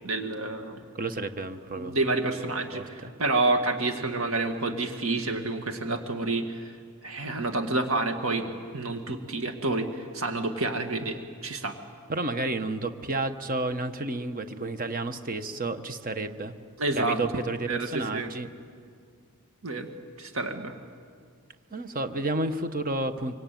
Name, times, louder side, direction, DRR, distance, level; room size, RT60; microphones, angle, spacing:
voice 1, 0.0-0.8 1.7-6.8 7.0-11.8 16.8-17.2 17.7-18.3 19.6-19.9 20.2-20.7, right 2 dB, 65° right, 6 dB, 2.0 m, -29 dB
voice 2, 0.9-1.9 2.7-3.1 12.1-16.5 16.9-18.5 21.7-23.3, right 2 dB, 40° right, 9 dB, 1.2 m, -31 dB
25.0 x 24.5 x 9.3 m, 2.1 s
head